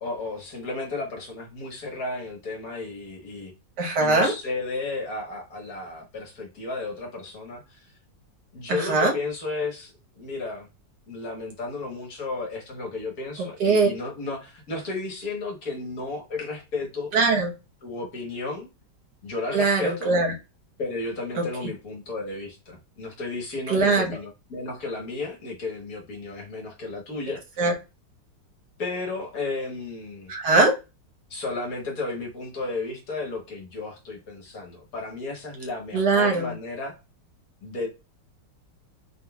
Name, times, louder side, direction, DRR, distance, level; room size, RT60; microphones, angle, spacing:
voice 1, 0.0-3.5 4.0-7.9 8.5-10.7 11.1-17.1 17.8-18.7 19.2-20.1 20.8-27.6 28.8-30.3 31.3-36.9 37.6-37.9, left 3 dB, 55° left, 1.6 m, -33 dB
voice 2, 3.8-4.3 8.7-9.1 13.6-13.9 17.1-17.5 19.5-20.3 21.4-21.5 23.7-24.1 27.6-27.7 30.3-30.7 35.9-36.5, right 3 dB, 65° right, 1.7 m, -21 dB
4.7 x 3.7 x 2.3 m
omnidirectional pair, 1.9 m